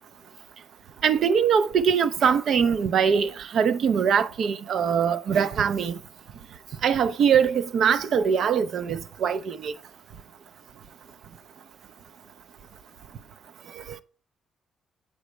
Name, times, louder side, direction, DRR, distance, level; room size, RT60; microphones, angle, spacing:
voice 1, 1.0-6.0 6.8-9.7, right 7 dB, 65° right, 0.5 m, -22 dB
7.8 x 5.0 x 3.1 m
cardioid pair, 90°, 0 cm